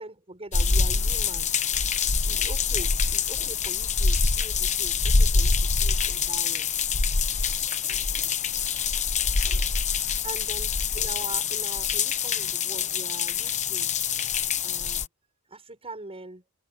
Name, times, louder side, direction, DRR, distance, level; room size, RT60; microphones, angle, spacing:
voice 1, 0.0-1.5 2.2-6.7 10.0-13.9 14.6-15.1 15.5-16.4, right 2 dB, 25° right, 6.3 m, -42 dB
sound 1, 0.5-15.1, left 5 dB, 30° left, 0.9 m, -25 dB
head